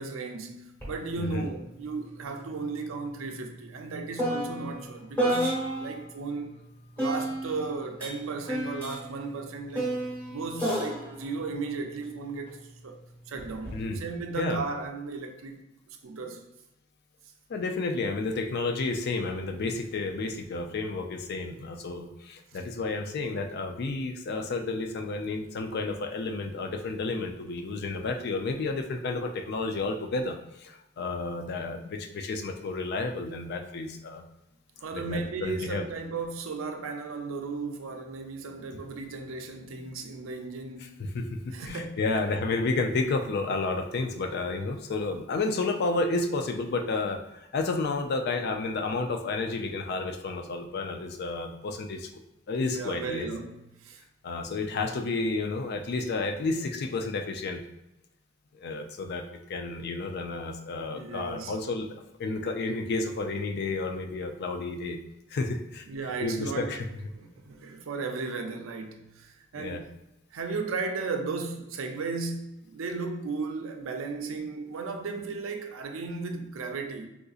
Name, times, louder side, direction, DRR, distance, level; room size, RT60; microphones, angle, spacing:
voice 1, 0.0-6.6 7.0-9.9 10.3-13.0 13.3-15.6 15.9-16.4 22.5-22.6 34.8-41.0 41.5-42.0 52.6-54.0 60.9-61.6 65.9-66.8 67.1-69.9 70.3-77.1, right 4 dB, 90° right, 4 dB, 0.5 m, -35 dB
sound 1, 0.8-1.0 1.3-6.1 7.0-12.5 13.4-13.8, equal, 10° left, 1.2 m, -32 dB
voice 2, 17.5-34.2 34.9-35.8 41.0-52.1 52.5-53.3 54.2-57.6 58.5-61.9 62.2-65.0 65.3-65.9 66.2-66.9 69.5-69.8, left 3 dB, 55° left, 5 dB, 0.4 m, -31 dB
3.7 x 2.6 x 2.4 m, 0.92 s
head